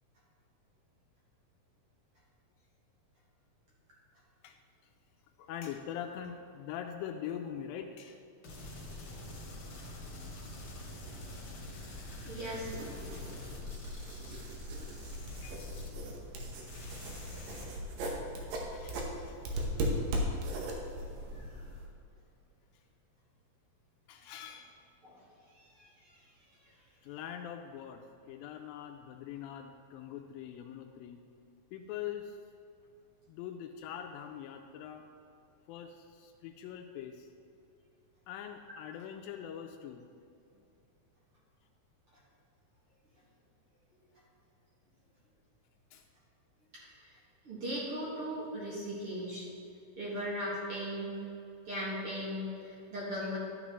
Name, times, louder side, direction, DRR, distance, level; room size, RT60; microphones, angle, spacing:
voice 1, 5.4-8.2 8.6-8.8 11.3-11.5 15.4-15.6 18.0-18.2 18.7-20.0 24.1-24.7 27.0-31.2 31.7-32.4 33.3-35.0 35.7-37.3 38.3-40.1 45.9-46.1, left 9 dB, 85° left, 4 dB, 2.3 m, -43 dB
sound 1, 8.4-16.4 16.7-17.6, left 1 dB, 45° left, 2.0 m, -45 dB
voice 2, 12.2-12.7 21.3-21.5 25.0-25.2 25.8-25.9 47.4-49.5 50.0-51.1 51.7-53.4, equal, 50° right, -7 dB, 2.1 m, -37 dB
sound 2, 12.6-21.9, equal, 70° right, 2.6 m, -38 dB
12.0 x 8.0 x 3.0 m, 2.6 s
omnidirectional pair, 4.1 m